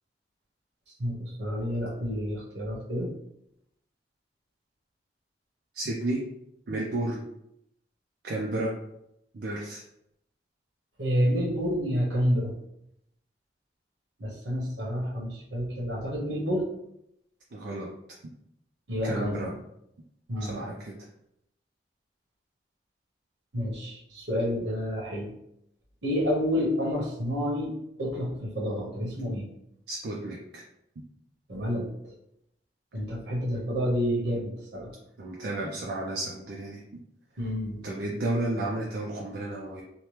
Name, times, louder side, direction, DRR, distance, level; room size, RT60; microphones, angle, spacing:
voice 1, 1.0-3.1 11.0-12.6 14.2-16.7 18.9-19.6 20.3-20.5 23.5-25.3 26.0-29.5 31.5-32.1 32.9-34.9 37.4-37.8, equal, 80° right, -3 dB, 1.0 m, -29 dB
voice 2, 5.8-6.2 6.7-7.2 8.2-8.7 9.3-9.8 17.5-17.9 19.0-19.5 20.4-20.9 29.9-30.6 31.0-31.1 35.2-36.8 37.8-39.8, right 2 dB, 60° right, -2 dB, 0.4 m, -32 dB
2.8 x 2.1 x 3.2 m, 0.78 s
head